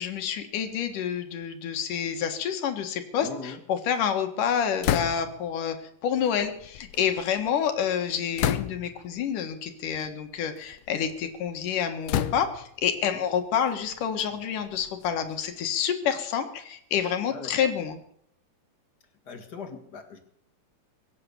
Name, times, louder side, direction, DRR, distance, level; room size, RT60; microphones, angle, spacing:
voice 1, 0.0-5.8 6.0-18.0, left 8 dB, 75° left, 7 dB, 3.0 m, -28 dB
voice 2, 3.2-3.6 13.0-13.3 17.3-17.5 19.2-20.2, left 4 dB, 40° left, 6 dB, 1.7 m, -40 dB
sound 1, 4.8-5.5 6.4-7.5 8.4-9.1 9.9-10.1 10.6-11.3 12.1-12.8 13.6-15.5, left 11 dB, 90° left, 1.4 m, -31 dB
23.0 x 8.6 x 6.9 m, 0.73 s
omnidirectional pair, 3.8 m